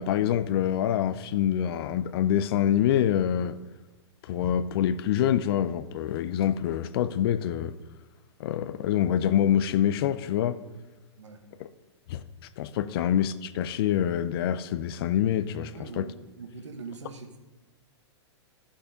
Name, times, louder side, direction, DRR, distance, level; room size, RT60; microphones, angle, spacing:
voice 1, 0.0-3.6 4.2-7.7 8.4-10.6 12.1-12.2 12.6-16.0, left 10 dB, 55° left, 0.7 m, -26 dB
voice 2, 15.7-17.4, right 4 dB, 80° right, 1.6 m, -42 dB
13.0 x 7.5 x 5.0 m
hypercardioid pair, 115°, 15 cm